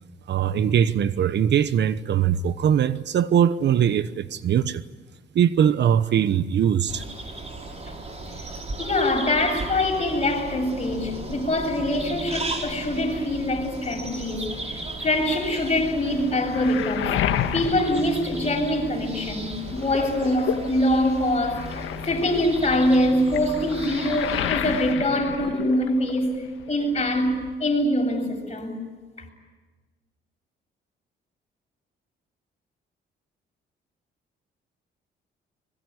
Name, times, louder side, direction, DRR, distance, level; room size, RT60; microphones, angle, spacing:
voice 1, 0.3-4.8 5.3-7.0, right 9 dB, 60° right, 1.0 m, -21 dB
sound 1, 6.9-24.9, right 2 dB, 35° right, 5.2 m, -36 dB
voice 2, 8.8-17.2 17.5-26.4 26.7-28.8, left 1 dB, 30° left, 7.9 m, -24 dB
Waves surf, 15.9-19.1 19.4-26.3 26.6-27.5, left 10 dB, 80° left, 1.8 m, -31 dB
25.0 x 22.5 x 9.8 m
cardioid pair, 90°, 20 cm